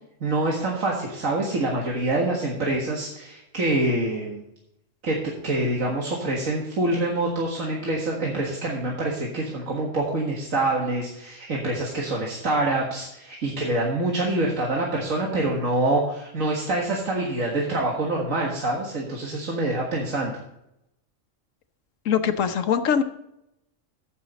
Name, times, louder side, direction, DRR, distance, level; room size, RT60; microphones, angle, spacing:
voice 1, 0.2-4.4 5.0-20.3, right 2 dB, 80° right, -2 dB, 2.1 m, -26 dB
voice 2, 22.1-23.0, left 8 dB, 75° left, 8 dB, 1.3 m, -22 dB
15.0 x 6.7 x 4.1 m, 0.83 s
omnidirectional pair, 1.4 m